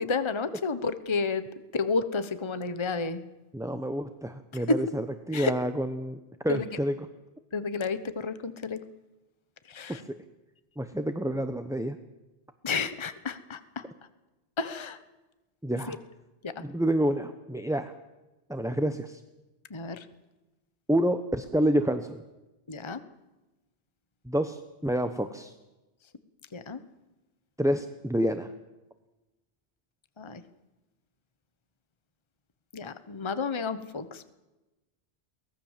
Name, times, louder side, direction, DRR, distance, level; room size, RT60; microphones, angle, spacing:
voice 1, 0.0-1.4 1.7-3.2 4.5-4.8 5.3-5.5 6.5-6.7 7.5-8.8 9.7-10.0 12.6-13.8 14.6-15.0 15.9-16.0 16.4-16.5 19.7-20.0 22.7-23.0 26.5-26.8 30.2-30.4 32.7-34.3, left 4 dB, 25° left, 12 dB, 1.1 m, -31 dB
voice 2, 3.5-6.2 6.4-6.9 10.8-12.0 15.6-16.0 16.6-17.9 18.5-19.2 20.9-22.2 24.3-25.5 27.6-28.5, equal, 5° right, 8 dB, 0.8 m, -28 dB
23.5 x 19.0 x 7.4 m, 1.1 s
omnidirectional pair, 1.1 m